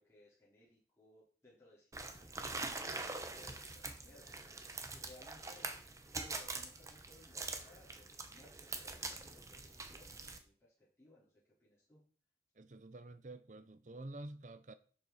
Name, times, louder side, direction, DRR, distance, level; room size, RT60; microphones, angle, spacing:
voice 1, 0.0-5.7 6.2-12.0, left 1 dB, 15° left, 4.2 m, -63 dB
sound 1, 1.9-10.4, right 3 dB, 20° right, 0.9 m, -44 dB
voice 2, 12.6-14.7, right 2 dB, 45° right, 0.6 m, -49 dB
11.5 x 7.3 x 4.2 m
head